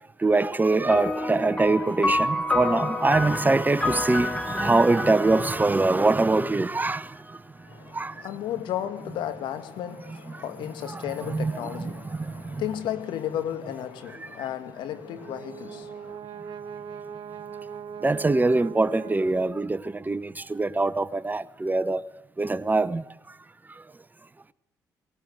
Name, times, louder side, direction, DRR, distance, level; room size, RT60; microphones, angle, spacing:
voice 1, 0.2-7.1 7.9-8.1 10.9-12.0 12.5-12.6 14.2-14.3 18.0-22.0 22.4-23.0, right 3 dB, 20° right, 0.9 m, -23 dB
sound 1, 0.9-6.7, left 2 dB, 15° left, 3.0 m, -29 dB
voice 2, 7.7-16.2, left 11 dB, 75° left, 1.9 m, -34 dB
Brass instrument, 14.9-19.9, right 7 dB, 65° right, 1.3 m, -40 dB
19.0 x 18.0 x 7.9 m
hypercardioid pair, 50°, 8 cm